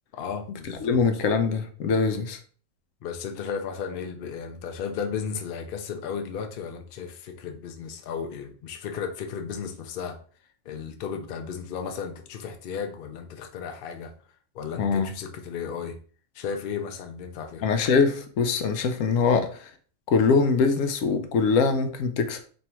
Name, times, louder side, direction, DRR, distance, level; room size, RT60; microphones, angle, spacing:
voice 1, 0.1-1.0 3.0-10.2 10.6-14.1 14.5-16.0 16.3-17.6, left 6 dB, 55° left, 5 dB, 0.7 m, -34 dB
voice 2, 0.8-2.4 14.8-15.1 17.6-19.7 20.1-22.4, left 5 dB, 90° left, 7 dB, 1.0 m, -23 dB
3.2 x 2.7 x 4.2 m, 0.42 s
omnidirectional pair, 1.3 m